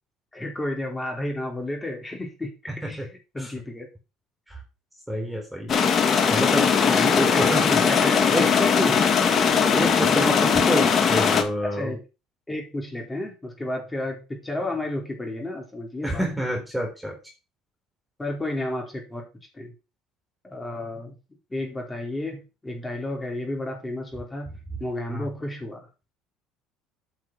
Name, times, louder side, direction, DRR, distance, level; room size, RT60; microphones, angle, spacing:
voice 1, 0.3-2.5 2.9-3.1 3.3-3.9 6.8-7.5 7.8-9.0 11.6-12.0 12.5-16.3 18.2-19.3 19.5-19.7 20.4-21.1 21.5-24.5 24.8-25.9, left 1 dB, 15° left, 1 dB, 4.7 m, -31 dB
voice 2, 5.1-5.8 6.3-6.7 7.2-7.8 8.3-8.5 8.9-9.0 9.7-11.9 16.0-17.1 25.1-25.3, equal, 5° right, 0 dB, 3.9 m, -28 dB
sound 1, 5.7-11.4, left 6 dB, 40° left, 2.1 m, -20 dB
9.2 x 6.4 x 6.1 m, 0.30 s
supercardioid pair, 85°, 0 cm